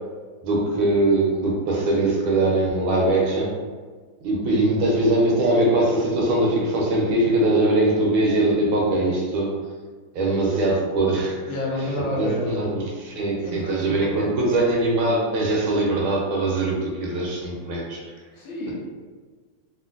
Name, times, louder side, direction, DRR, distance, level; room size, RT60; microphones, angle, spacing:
voice 1, 0.4-3.6 4.2-9.5 10.1-11.4 12.1-18.0, right 2 dB, 85° right, -2 dB, 1.6 m, -21 dB
voice 2, 11.5-12.7 13.4-14.3 18.3-18.7, left 1 dB, 80° left, -4 dB, 1.6 m, -29 dB
3.6 x 2.5 x 2.5 m, 1.5 s
omnidirectional pair, 2.2 m